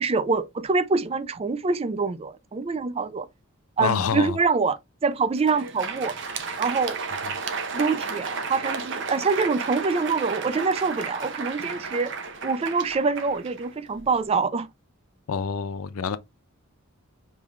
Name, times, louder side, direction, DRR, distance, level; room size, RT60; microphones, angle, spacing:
voice 1, 0.0-3.3 3.8-4.8 5.0-6.1 6.6-7.0 7.7-12.1 12.4-14.7, right 4 dB, 30° right, 0.3 m, -25 dB
voice 2, 3.8-4.4 7.2-7.3 15.3-16.2, left 6 dB, 85° left, 0.5 m, -27 dB
Crowd, 5.2-14.2, right 4 dB, 60° right, 0.7 m, -33 dB
5.2 x 3.2 x 2.4 m
head